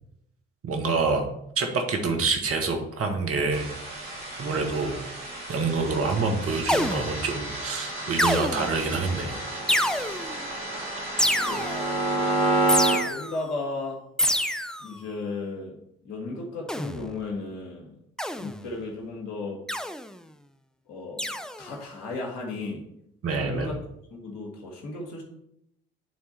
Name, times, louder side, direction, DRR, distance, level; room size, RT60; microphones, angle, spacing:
voice 1, 0.6-1.3 1.5-3.7 4.4-5.0 5.5-9.4 23.2-23.7, right 4 dB, 50° right, 3 dB, 1.6 m, -27 dB
sound 1, 3.5-13.0, right 2 dB, 90° right, 1.7 m, -30 dB
sound 2, 6.7-7.3 8.2-8.8 9.7-10.4 11.2-11.9 12.7-13.4 14.2-14.9 16.7-17.1 18.2-18.6 19.7-20.1 21.2-21.7, equal, ahead, 0.5 m, -27 dB
voice 2, 11.4-11.9 12.7-14.0 14.8-15.8 16.0-17.9 18.4-19.9 20.9-22.8 23.3-23.8 24.1-25.2, left 3 dB, 65° left, -2 dB, 1.8 m, -35 dB
9.4 x 3.6 x 4.4 m, 0.76 s
hypercardioid pair, 50°, 29 cm